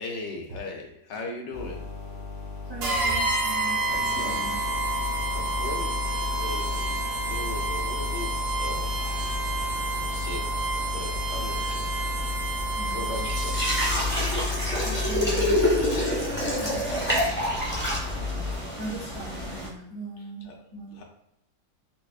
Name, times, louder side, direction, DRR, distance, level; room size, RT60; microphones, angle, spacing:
voice 1, 0.0-1.9 5.3-7.0 7.3-9.3 10.1-10.6 10.9-11.9 12.9-13.7 20.4-20.5 20.9-21.0, left 2 dB, 75° left, 1 dB, 1.3 m, -38 dB
sound 1, 1.5-18.5, left 4 dB, 60° left, 0.6 m, -34 dB
voice 2, 2.6-4.6 12.8-13.3 14.3-15.6 16.6-17.3 18.4-21.0, right 3 dB, 60° right, -6 dB, 0.6 m, -40 dB
sound 2, 2.8-14.2, right 3 dB, 80° right, 1.5 m, -29 dB
sound 3, 3.9-19.7, equal, 15° left, 0.4 m, -30 dB
5.7 x 2.0 x 2.4 m, 0.77 s
omnidirectional pair, 2.0 m